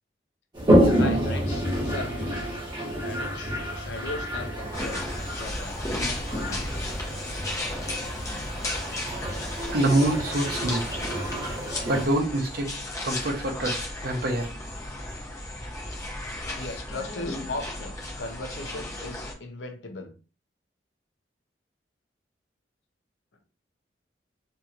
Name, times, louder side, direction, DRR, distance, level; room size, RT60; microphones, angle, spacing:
Toilet flush, 0.5-12.1, equal, 25° right, 1.1 m, -28 dB
voice 1, 0.8-2.5 3.0-5.0 5.3-6.0 6.3-6.8 16.6-20.1, left 3 dB, 80° left, 6 dB, 0.6 m, -38 dB
sound 1, 4.7-19.3, left 1 dB, 20° left, 0.7 m, -34 dB
voice 2, 9.7-10.9 11.9-12.7 13.0-14.5, right 1 dB, 55° right, 3 dB, 0.7 m, -25 dB
2.8 x 2.7 x 2.4 m, 0.35 s
head